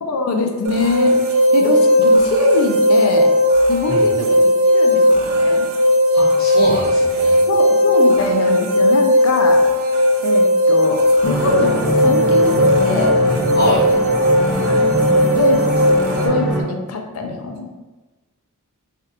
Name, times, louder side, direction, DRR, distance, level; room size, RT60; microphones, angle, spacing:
voice 1, 0.0-3.3 3.7-5.7 7.5-9.7 10.2-13.2 14.7-15.1 15.3-16.0 16.2-17.7, left 3 dB, 70° left, 4 dB, 0.5 m, -23 dB
sound 1, 0.6-16.3, equal, 65° right, 0.4 m, -16 dB
voice 2, 6.1-7.4 13.5-13.8, left 1 dB, 45° left, -7 dB, 1.1 m, -23 dB
sound 2, 11.2-16.6, equal, ahead, 0.5 m, -22 dB
3.3 x 2.4 x 2.8 m, 1.1 s
head